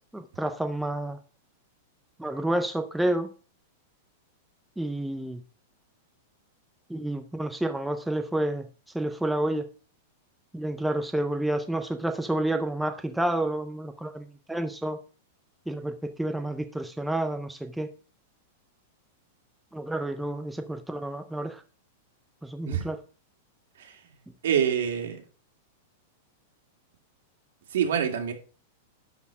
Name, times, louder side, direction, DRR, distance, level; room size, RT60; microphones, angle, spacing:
voice 1, 0.1-1.2 2.2-3.3 4.8-5.4 6.9-8.7 8.9-9.7 10.5-15.0 15.7-17.9 19.7-21.6 22.4-23.0, right 1 dB, ahead, 0.5 m, -29 dB
voice 2, 24.4-25.2 27.7-28.3, right 8 dB, 75° right, 2.2 m, -26 dB
11.0 x 4.2 x 6.0 m
supercardioid pair, 180°, 0 cm